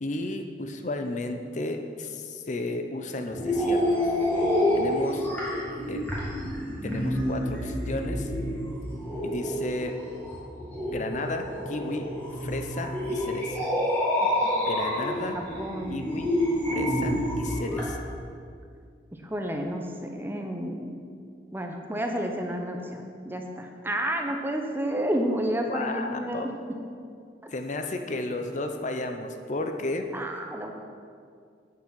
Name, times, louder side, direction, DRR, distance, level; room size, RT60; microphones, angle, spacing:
voice 1, 0.0-4.1 4.7-5.3 5.9-6.1 6.8-8.3 9.2-10.0 10.9-12.1 12.4-13.6 14.5-15.4 15.9-16.3 16.7-18.0 25.7-26.5 27.5-30.1, left 2 dB, 40° left, 5 dB, 0.6 m, -33 dB
sound 1, 3.3-17.9, left 1 dB, 10° left, 2.0 m, -28 dB
voice 2, 15.3-16.0 19.1-21.0 21.5-26.8 27.4-27.5 30.1-30.7, equal, 10° right, 3 dB, 0.7 m, -31 dB
8.8 x 7.0 x 6.3 m, 2.3 s
head